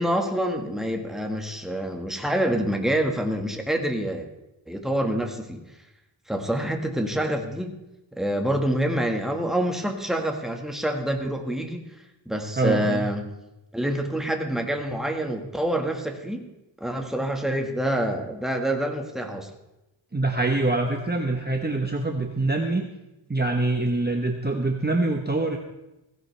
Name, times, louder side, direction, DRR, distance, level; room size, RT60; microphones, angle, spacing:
voice 1, 0.0-4.3 4.7-5.6 6.3-7.7 8.1-11.8 12.2-13.3 13.7-16.5 16.8-19.5, right 1 dB, ahead, 3 dB, 1.6 m, -26 dB
voice 2, 12.6-13.1 20.1-22.9 23.3-25.6, right 2 dB, 20° right, 2 dB, 1.1 m, -24 dB
16.0 x 15.5 x 3.3 m, 0.94 s
wide cardioid pair, 110°, 46 cm